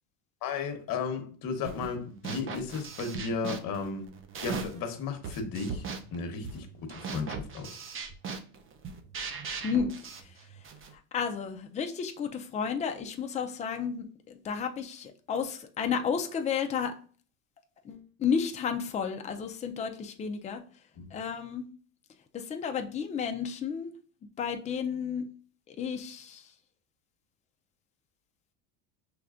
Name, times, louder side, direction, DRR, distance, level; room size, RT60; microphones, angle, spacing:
voice 1, 0.4-4.1 4.4-7.7 21.0-21.1, left 5 dB, 50° left, 1.1 m, -34 dB
sound 1, 1.6-2.0 2.2-4.9 5.2-10.9, right 5 dB, 30° right, 0.6 m, -39 dB
voice 2, 11.1-16.9 17.8-20.6 21.1-21.7 22.3-23.9 24.4-25.2 25.7-26.4, left 6 dB, 15° left, 0.4 m, -32 dB
5.9 x 3.4 x 2.5 m
supercardioid pair, 105°, 45 cm